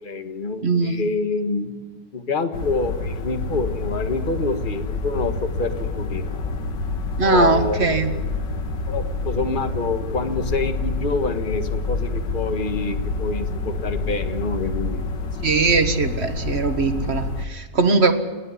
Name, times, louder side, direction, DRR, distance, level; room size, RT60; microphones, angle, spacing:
voice 1, 0.0-1.7 2.1-6.3 7.2-8.2 8.9-15.1, left 3 dB, 30° left, 8 dB, 1.6 m, -27 dB
voice 2, 0.6-1.0 7.2-8.1 15.4-18.1, right 3 dB, 40° right, 7 dB, 1.7 m, -20 dB
sound 1, 2.5-17.4, left 3 dB, 85° left, 2.2 m, -28 dB
29.5 x 11.0 x 9.8 m, 1.3 s
omnidirectional pair, 1.9 m